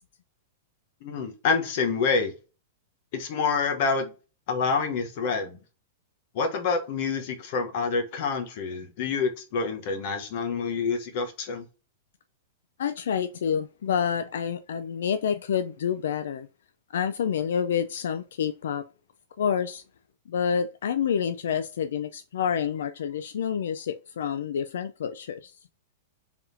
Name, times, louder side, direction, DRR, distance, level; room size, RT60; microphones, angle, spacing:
voice 1, 1.0-2.3 3.1-4.1 4.5-5.6 6.3-11.6, left 5 dB, 40° left, 0.9 m, -27 dB
voice 2, 12.8-16.5 16.9-18.8 19.4-19.8 20.3-25.5, left 7 dB, 80° left, 0.3 m, -28 dB
4.6 x 3.5 x 2.6 m
supercardioid pair, 175°, 0 cm